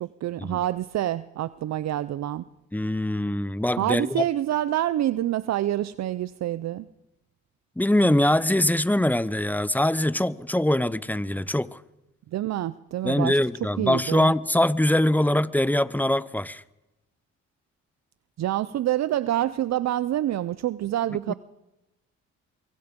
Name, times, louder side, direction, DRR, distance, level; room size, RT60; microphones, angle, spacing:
voice 1, 0.0-2.4 3.8-6.9 12.3-14.3 18.4-21.3, right 13 dB, 60° right, 0.7 m, -27 dB
voice 2, 2.7-4.2 7.8-11.8 13.0-16.6 21.3-21.4, left 1 dB, 5° left, 0.8 m, -23 dB
23.5 x 23.5 x 5.3 m
cardioid pair, 90°, 30 cm